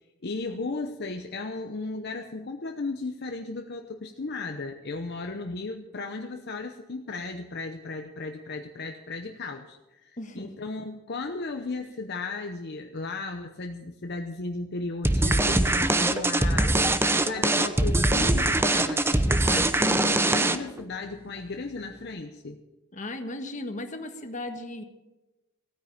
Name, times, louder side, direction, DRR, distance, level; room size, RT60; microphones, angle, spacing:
voice 1, 0.2-22.6, left 3 dB, 55° left, 4 dB, 0.8 m, -35 dB
voice 2, 10.2-10.5 22.9-24.8, left 1 dB, 40° left, 6 dB, 1.4 m, -36 dB
sound 1, 15.0-20.8, right 2 dB, 10° right, 0.7 m, -23 dB
16.0 x 9.4 x 7.2 m, 1.1 s
head